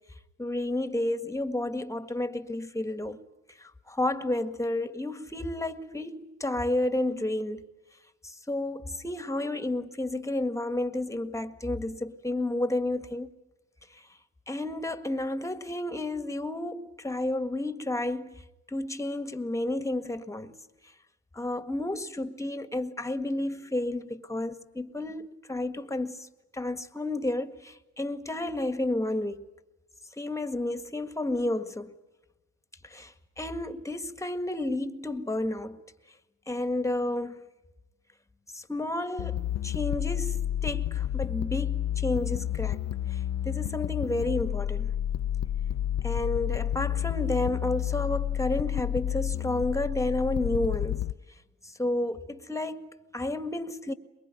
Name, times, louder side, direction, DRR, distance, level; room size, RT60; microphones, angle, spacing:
voice 1, 0.4-3.2 3.6-7.6 8.2-13.3 14.5-18.3 18.7-20.6 21.3-26.3 26.5-29.4 30.2-31.9 32.8-35.8 36.5-37.4 38.5-42.8 43.1-44.9 46.0-51.1 51.6-53.9, left 1 dB, 10° left, 1.7 m, -31 dB
sound 1, 39.2-51.1, left 11 dB, 65° left, 0.8 m, -30 dB
23.5 x 22.0 x 9.2 m
cardioid pair, 90°, 30 cm